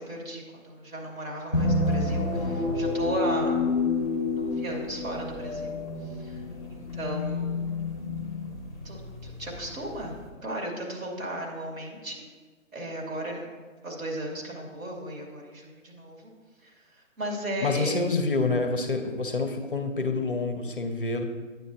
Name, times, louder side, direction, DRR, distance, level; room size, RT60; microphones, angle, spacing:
voice 1, 0.0-3.6 4.3-6.4 6.7-7.6 8.8-12.2 12.7-13.5 13.8-16.3 16.6-18.0, right 1 dB, 80° right, -2 dB, 2.5 m, -35 dB
sound 1, 1.5-10.3, left 3 dB, 20° right, 0.8 m, -29 dB
voice 2, 17.6-21.2, left 3 dB, 40° left, 5 dB, 0.5 m, -27 dB
9.1 x 8.1 x 2.7 m, 1.4 s
hypercardioid pair, 165°, 41 cm